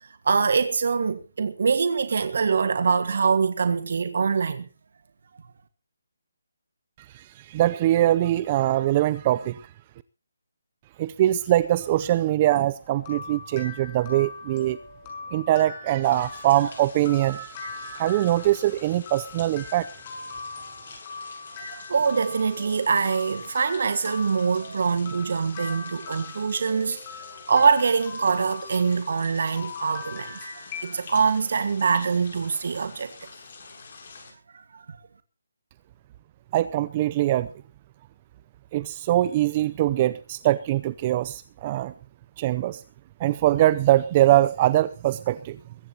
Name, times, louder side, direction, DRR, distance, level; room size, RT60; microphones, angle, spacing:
voice 1, 0.0-4.6 21.6-30.4 30.8-33.1 34.5-35.0, right 5 dB, 55° right, 1.6 m, -24 dB
voice 2, 7.1-9.7 11.0-14.8 15.3-19.9 36.5-37.5 38.7-41.9 42.4-42.8 43.2-45.6, right 14 dB, 20° right, 0.6 m, -22 dB
sound 1, 12.6-31.4, left 4 dB, 20° left, 5.9 m, -41 dB
sound 2, 16.0-34.3, left 4 dB, 45° left, 7.3 m, -46 dB
22.5 x 14.5 x 2.9 m
hypercardioid pair, 170°, 0 cm